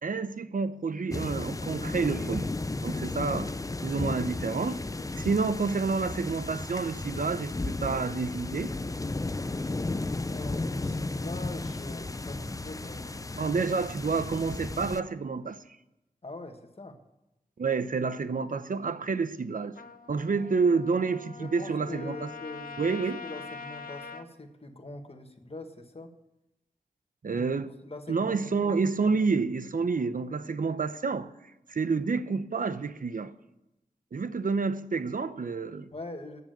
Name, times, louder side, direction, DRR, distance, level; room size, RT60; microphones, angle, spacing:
voice 1, 0.0-2.5 2.8-3.5 3.8-4.8 5.2-8.7 13.4-15.6 17.6-19.8 20.1-22.3 22.8-23.2 27.2-27.7 28.1-31.3 31.7-33.4 34.1-35.9, right 4 dB, 60° right, 0.7 m, -29 dB
sound 1, 1.1-15.0, left 2 dB, 20° left, 0.5 m, -34 dB
voice 2, 10.2-13.5 16.2-17.0 21.4-26.1 27.3-28.8 35.9-36.4, left 2 dB, 40° left, 1.5 m, -43 dB
Trumpet, 19.7-24.3, left 5 dB, 70° left, 0.8 m, -43 dB
9.5 x 7.2 x 9.0 m
cardioid pair, 45°, 15 cm